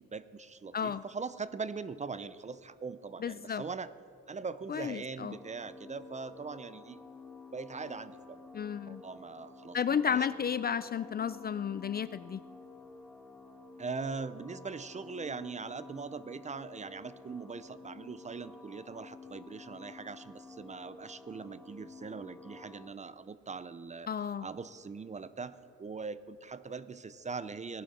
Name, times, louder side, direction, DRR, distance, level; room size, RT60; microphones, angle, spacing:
voice 1, 0.0-3.9 4.3-7.0 7.5-8.4 8.9-10.3 13.8-24.1 24.4-27.8, right 4 dB, 25° right, 15 dB, 0.5 m, -41 dB
voice 2, 3.2-3.6 4.7-5.4 8.5-9.0 9.7-12.4 24.1-24.5, left 7 dB, 35° left, 15 dB, 0.4 m, -32 dB
sound 1, 5.3-22.9, left 4 dB, 5° left, 1.3 m, -51 dB
18.0 x 11.0 x 4.2 m, 2.9 s
cardioid pair, 90°, 30 cm